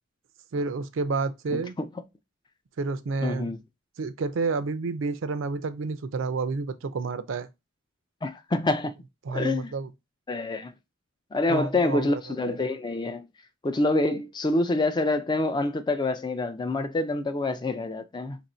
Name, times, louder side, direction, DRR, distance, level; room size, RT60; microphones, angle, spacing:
voice 1, 0.5-1.7 2.8-3.5 4.0-7.5 9.2-9.9 11.5-12.6, right 4 dB, 80° right, 0.4 m, -30 dB
voice 2, 1.5-1.9 3.2-3.6 8.2-8.9 9.3-9.7 10.3-10.7 11.3-13.3 13.6-18.4, left 2 dB, 20° left, 0.4 m, -26 dB
3.0 x 2.6 x 4.2 m
head